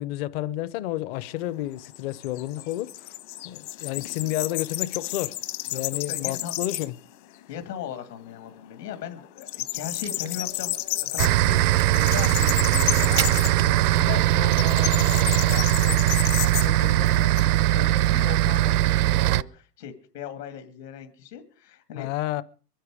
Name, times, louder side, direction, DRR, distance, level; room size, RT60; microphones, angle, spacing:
voice 1, 0.0-3.2 3.4-5.4 5.7-7.0 22.0-22.4, left 14 dB, 40° left, 0.7 m, -30 dB
sound 1, 1.1-7.1 7.4-7.5 7.9-8.7 8.9-17.4, left 16 dB, 60° left, 1.4 m, -32 dB
voice 2, 6.1-6.5 7.5-16.0 16.4-22.1, left 9 dB, 75° left, 2.4 m, -38 dB
Crack, 9.8-14.4, right 11 dB, 90° right, 1.2 m, -36 dB
sound 2, 11.2-19.4, right 15 dB, 65° right, 0.6 m, -20 dB
23.0 x 10.5 x 4.9 m
hypercardioid pair, 125°, 49 cm